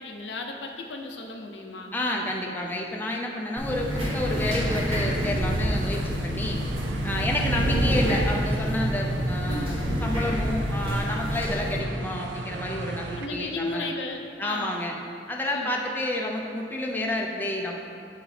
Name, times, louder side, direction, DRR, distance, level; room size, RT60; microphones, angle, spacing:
voice 1, 0.0-1.9 9.5-9.8 13.2-14.7 15.5-15.7, left 2 dB, 85° left, 2 dB, 0.6 m, -35 dB
voice 2, 1.9-6.6 7.0-13.9 14.4-14.9 15.3-17.7, left 1 dB, 10° left, -1 dB, 0.5 m, -30 dB
sound 1, 3.6-11.8, equal, 30° right, 1.5 m, -28 dB
sound 2, 3.7-13.3, right 2 dB, 85° right, 0.4 m, -33 dB
8.6 x 4.8 x 3.3 m, 2.5 s
head